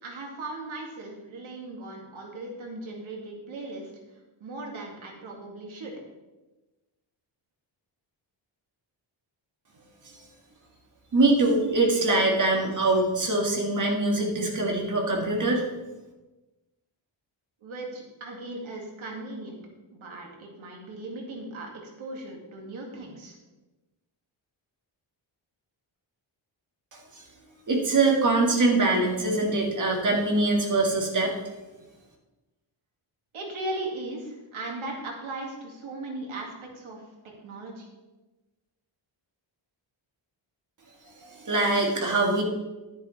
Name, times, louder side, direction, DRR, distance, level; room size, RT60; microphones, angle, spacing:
voice 1, 0.0-3.9 4.4-5.9 17.6-19.6 19.9-21.7 22.0-23.4 33.3-37.0 37.4-37.9, right 2 dB, 85° right, 0 dB, 2.3 m, -38 dB
voice 2, 11.1-15.7 27.1-27.2 27.7-31.3 41.2-42.4, right 2 dB, 40° right, 0 dB, 1.9 m, -23 dB
11.0 x 10.0 x 3.3 m, 1.1 s
wide cardioid pair, 180°, 47 cm